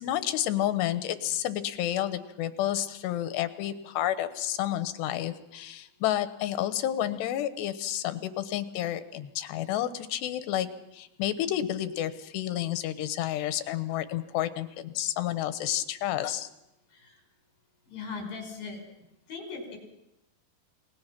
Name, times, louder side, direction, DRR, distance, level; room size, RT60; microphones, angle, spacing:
voice 1, 0.0-10.7 10.9-16.5, left 12 dB, 85° left, 11 dB, 3.3 m, -30 dB
voice 2, 17.9-18.8 19.3-19.8, left 4 dB, 60° left, 3 dB, 7.3 m, -39 dB
29.5 x 19.0 x 6.0 m, 0.86 s
omnidirectional pair, 4.8 m